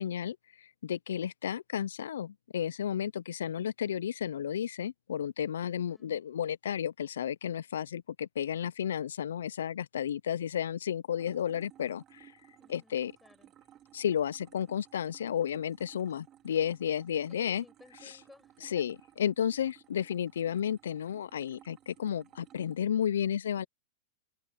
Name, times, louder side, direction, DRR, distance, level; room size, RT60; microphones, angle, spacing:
voice 1, 0.0-12.3 12.7-13.1 13.9-17.6 18.6-23.7, left 9 dB, 85° left, 0.3 m, -32 dB
sound 1, 11.1-22.8, right 11 dB, 35° right, 2.3 m, -59 dB
voice 2, 12.6-13.5 17.3-18.8, left 2 dB, 10° left, 7.7 m, -58 dB
hypercardioid pair, 125°, 0 cm